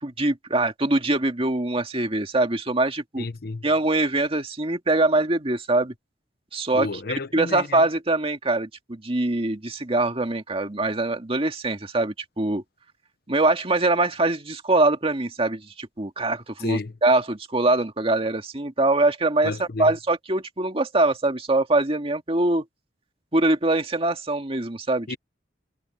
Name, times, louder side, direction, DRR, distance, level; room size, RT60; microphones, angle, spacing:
voice 1, 0.0-3.3 3.6-5.9 6.5-6.9 7.3-12.6 13.3-22.6 23.3-25.1, right 2 dB, 35° right, 2.0 m, -23 dB
voice 2, 3.2-3.7 6.7-7.8 16.6-17.0 19.4-19.9 25.1-25.2, left 3 dB, 60° left, 0.8 m, -31 dB
head